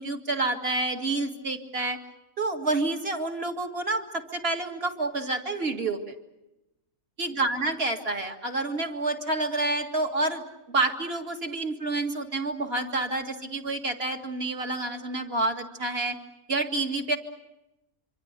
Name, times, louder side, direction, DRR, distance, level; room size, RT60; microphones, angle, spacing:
voice 1, 0.0-2.0 2.4-6.1 7.2-10.4 10.7-16.2 16.5-17.2, right 2 dB, 45° right, 4 dB, 2.2 m, -28 dB
26.0 x 25.0 x 6.7 m, 0.93 s
omnidirectional pair, 1.5 m